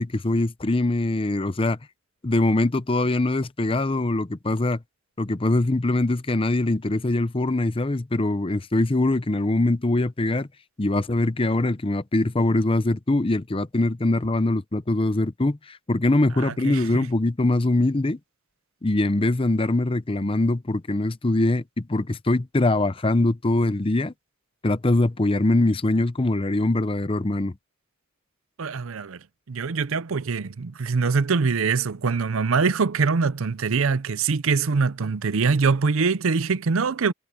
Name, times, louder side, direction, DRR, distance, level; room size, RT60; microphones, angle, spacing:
voice 1, 0.0-1.8 2.2-4.8 5.2-10.5 10.8-18.2 18.8-24.1 24.6-27.5, left 2 dB, 25° left, 0.7 m, -23 dB
voice 2, 16.4-16.9 28.6-29.2 29.5-37.1, right 4 dB, 70° right, 0.6 m, -23 dB
head